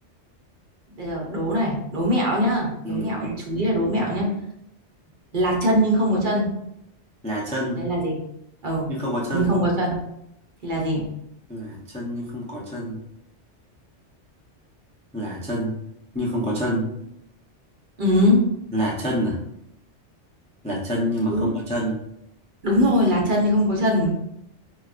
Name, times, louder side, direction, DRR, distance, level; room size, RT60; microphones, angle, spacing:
voice 1, 0.9-4.3 5.3-6.5 7.7-8.2 8.6-8.9 9.3-10.0 10.6-11.0 18.0-18.4 21.3-21.5 22.6-24.1, equal, 50° right, -2 dB, 0.9 m, -21 dB
voice 2, 2.8-4.2 7.2-7.8 8.9-9.5 11.5-13.0 15.1-15.8 16.1-16.9 18.7-19.4 20.6-22.0, equal, 10° left, -5 dB, 0.4 m, -27 dB
4.6 x 2.3 x 2.4 m, 0.77 s
omnidirectional pair, 1.2 m